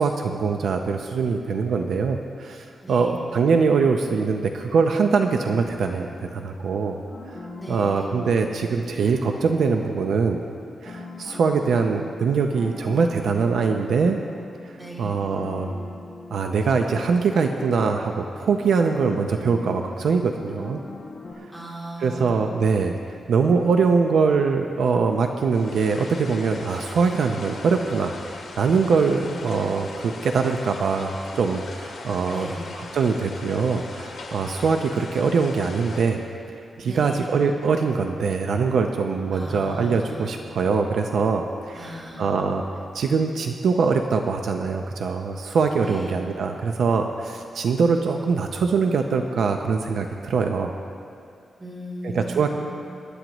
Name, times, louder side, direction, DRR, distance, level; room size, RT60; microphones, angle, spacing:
voice 1, 0.0-7.0 7.3-7.4 7.7-10.4 10.8-14.2 14.7-15.7 16.3-20.8 22.0-36.2 36.8-42.6 42.9-50.7 52.1-52.6, right 5 dB, 70° right, 4 dB, 0.7 m, -23 dB
voice 2, 2.8-3.2 7.5-8.1 14.7-15.2 21.5-22.5 29.0-29.6 32.3-32.7 36.8-37.3 39.3-40.3 41.7-42.4 45.8-46.2 51.6-52.6, equal, 10° right, -6 dB, 2.9 m, -37 dB
sound 1, 5.3-21.3, left 2 dB, 35° left, 2.6 m, -41 dB
sound 2, 25.5-36.1, left 3 dB, 60° left, 2.1 m, -39 dB
24.5 x 12.0 x 3.1 m, 2.5 s
wide cardioid pair, 180°, 0 cm